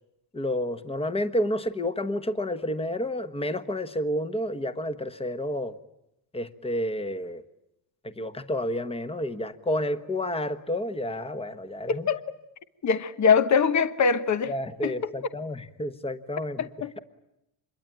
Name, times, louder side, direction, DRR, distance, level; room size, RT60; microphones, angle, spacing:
voice 1, 0.3-5.8 6.3-7.4 8.0-12.1 14.5-16.7, left 1 dB, 10° left, 1.3 m, -30 dB
voice 2, 11.9-12.2 12.8-14.5 14.8-15.1 16.6-16.9, left 6 dB, 35° left, 1.2 m, -23 dB
26.5 x 22.0 x 9.0 m
cardioid pair, 105°, 48 cm